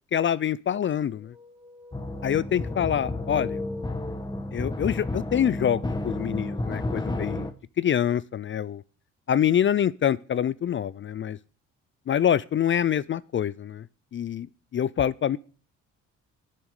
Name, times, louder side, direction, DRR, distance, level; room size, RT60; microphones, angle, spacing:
voice 1, 0.1-1.3 2.2-3.6 4.5-8.8 9.3-11.4 12.1-13.9 14.1-14.5 14.7-15.4, left 9 dB, 40° left, 0.5 m, -25 dB
sound 1, 1.2-4.8, left 4 dB, 10° right, 2.6 m, -41 dB
sound 2, 1.9-7.5, left 1 dB, 15° left, 1.3 m, -32 dB
9.4 x 7.3 x 6.6 m
cardioid pair, 90°, 30 cm